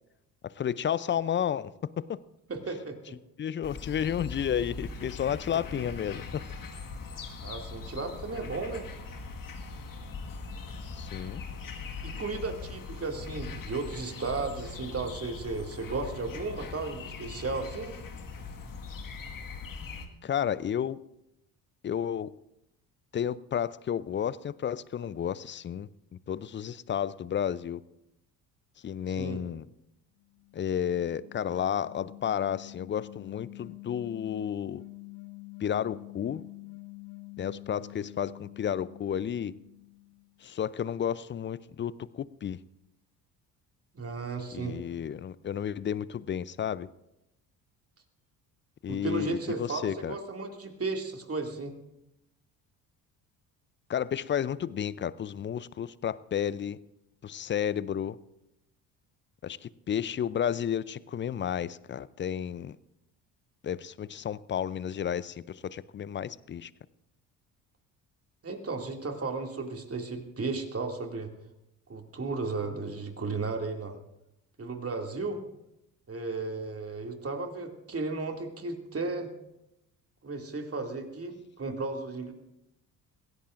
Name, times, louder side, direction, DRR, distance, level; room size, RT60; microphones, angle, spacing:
voice 1, 0.4-2.2 3.4-6.4 10.9-11.4 20.2-21.0 21.8-22.3 23.1-27.8 28.8-29.6 30.5-34.8 35.6-36.4 37.4-39.5 40.4-42.6 44.5-46.9 48.8-50.2 53.9-56.8 57.2-58.2 59.4-62.8 63.6-66.7, left 9 dB, 25° left, 0.5 m, -32 dB
voice 2, 2.5-3.2 5.5-5.8 7.4-8.9 12.0-17.9 29.2-29.4 43.9-44.8 48.9-51.7 68.4-71.3 71.9-74.0 74.6-75.4 76.1-79.3 80.2-82.3, right 3 dB, 30° right, 2.5 m, -34 dB
sound 1, 3.6-20.1, left 4 dB, 45° left, 1.8 m, -41 dB
sound 2, 30.2-40.3, left 27 dB, 65° left, 2.1 m, -47 dB
22.5 x 16.5 x 2.5 m
hypercardioid pair, 55°, 47 cm